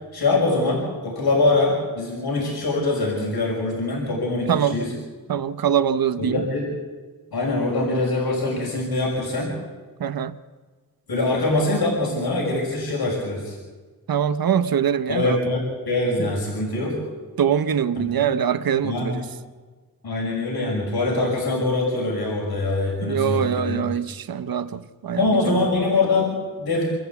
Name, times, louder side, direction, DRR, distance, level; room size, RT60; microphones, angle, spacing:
voice 1, 0.1-4.9 6.2-6.7 7.3-9.6 11.1-13.6 15.1-17.0 17.9-18.1 18.8-19.2 20.0-23.8 25.2-26.8, left 2 dB, 85° left, -2 dB, 5.8 m, -23 dB
voice 2, 5.3-6.4 10.0-10.3 14.1-15.4 17.4-19.2 23.0-25.7, right 8 dB, 70° right, 12 dB, 0.9 m, -23 dB
26.5 x 14.0 x 8.3 m, 1.4 s
wide cardioid pair, 100°, 37 cm